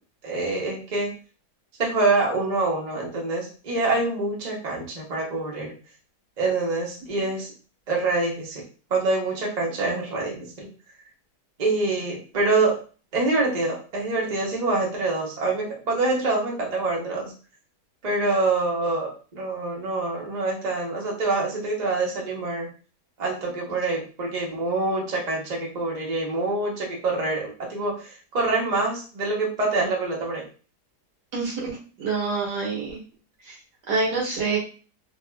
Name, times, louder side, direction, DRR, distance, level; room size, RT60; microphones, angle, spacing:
voice 1, 0.2-1.2 1.8-5.7 6.4-7.5 7.9-8.6 8.9-10.7 11.6-12.8 13.1-17.3 18.0-22.7 23.2-30.5, right 3 dB, 35° right, -2 dB, 0.7 m, -25 dB
voice 2, 31.3-31.7 32.0-33.0 33.5-33.6 33.9-34.6, right 4 dB, 75° right, -2 dB, 1.6 m, -26 dB
3.5 x 2.4 x 2.2 m, 0.36 s
omnidirectional pair, 1.7 m